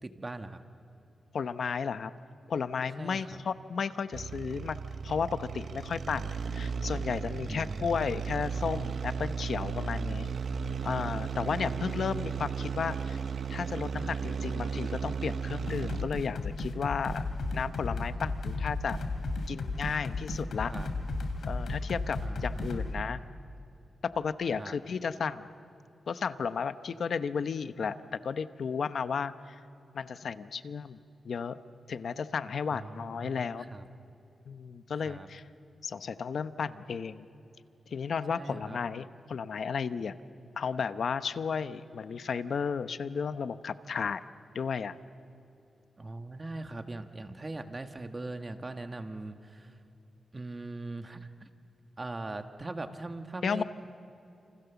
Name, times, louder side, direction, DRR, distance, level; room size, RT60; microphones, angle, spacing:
voice 1, 0.0-0.6 3.0-3.3 7.4-8.0 11.6-11.8 20.7-20.9 22.2-22.9 24.6-24.8 32.7-33.4 33.7-33.8 35.0-35.3 38.3-38.8 46.0-49.8 50.3-51.5 52.0-53.6, right 2 dB, 25° right, 7 dB, 1.3 m, -41 dB
voice 2, 1.3-2.1 2.5-4.8 5.0-10.3 10.8-13.2 13.5-17.2 17.5-19.0 19.5-20.7 21.4-23.2 24.0-25.5 26.1-29.6 29.9-31.0 31.2-31.6 31.9-33.7 34.5-35.4 35.8-37.3 37.9-40.1 40.6-44.2 44.5-44.9 53.4-53.6, left 6 dB, 60° left, 12 dB, 0.8 m, -33 dB
sound 1, 4.1-16.2, right 6 dB, 55° right, 0.7 m, -35 dB
sound 2, 15.7-22.9, left 3 dB, 80° left, 3.2 m, -34 dB
29.5 x 28.0 x 7.1 m, 2.8 s
wide cardioid pair, 170°, 0 cm